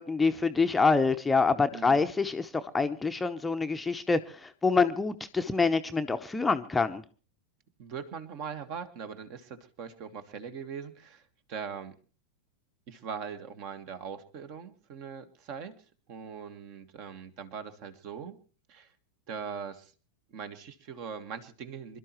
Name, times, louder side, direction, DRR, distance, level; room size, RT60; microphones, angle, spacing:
voice 1, 0.0-7.0, left 4 dB, 10° left, 0.8 m, -26 dB
voice 2, 1.7-2.1 7.8-12.0 12.9-15.7 16.1-18.4 18.7-18.9 19.3-19.9 20.3-22.0, right 6 dB, 45° right, 1.8 m, -41 dB
26.0 x 12.5 x 3.1 m
figure-of-eight pair, 90°, 0 cm